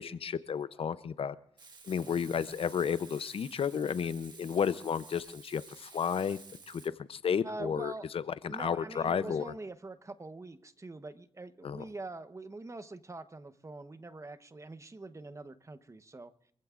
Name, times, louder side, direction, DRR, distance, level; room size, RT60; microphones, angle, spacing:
voice 1, 0.0-1.3 1.9-6.4 6.7-9.5 11.6-11.8, left 7 dB, 65° left, 15 dB, 0.6 m, -32 dB
Frying (food), 1.6-6.9, right 4 dB, 45° right, 1.7 m, -52 dB
voice 2, 7.4-8.1 8.5-16.3, right 2 dB, 30° right, 11 dB, 1.0 m, -44 dB
25.5 x 15.0 x 2.5 m, 0.69 s
cardioid pair, 55°, 10 cm